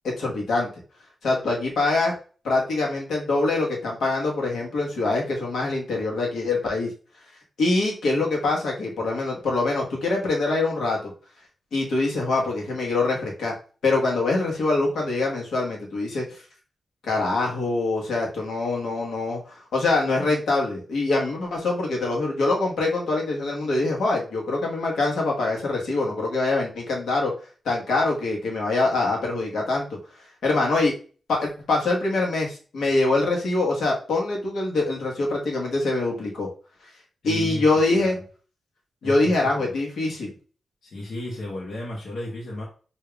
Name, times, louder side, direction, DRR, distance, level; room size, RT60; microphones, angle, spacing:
voice 1, 0.0-0.7 1.2-2.1 2.4-6.9 7.6-11.1 11.7-13.5 13.8-16.4 17.0-27.3 27.6-29.9 30.4-30.9 31.3-36.5 37.2-38.2 39.0-40.3, left 2 dB, 90° left, -2 dB, 1.2 m, -24 dB
voice 2, 37.2-37.6 38.0-38.2 39.0-39.7 40.8-42.6, left 1 dB, 70° left, -4 dB, 1.1 m, -34 dB
5.1 x 2.7 x 2.3 m, 0.39 s
wide cardioid pair, 115°, 0 cm